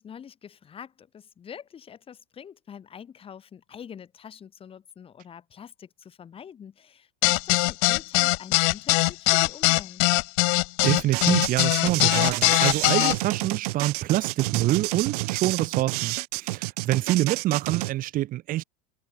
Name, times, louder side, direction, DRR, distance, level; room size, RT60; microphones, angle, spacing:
voice 1, 0.0-10.0, left 8 dB, 25° left, 6.7 m, -45 dB
sound 1, 7.2-13.1, left 40 dB or more, 60° left, 1.1 m, -21 dB
voice 2, 10.8-18.6, right 15 dB, 45° right, 2.5 m, -26 dB
sound 2, 10.8-17.9, right 23 dB, 70° right, 1.4 m, -30 dB
supercardioid pair, 125°, 20 cm